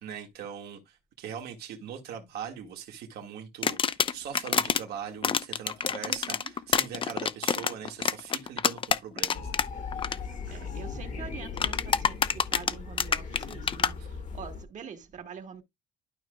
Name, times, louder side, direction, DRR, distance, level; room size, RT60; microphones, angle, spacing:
voice 1, 0.0-9.6 10.0-10.6, right 8 dB, 70° right, 1.6 m, -41 dB
sound 1, 3.6-4.8 5.2-9.7 9.9-10.2 11.6-13.9, left 7 dB, 30° left, 0.5 m, -26 dB
voice 2, 6.0-6.3 10.5-12.2 12.5-13.9 14.4-15.6, right 7 dB, 45° right, 1.5 m, -44 dB
sound 2, 9.3-14.6, left 5 dB, 50° left, 1.3 m, -38 dB
12.0 x 4.9 x 2.3 m
cardioid pair, 110°, 17 cm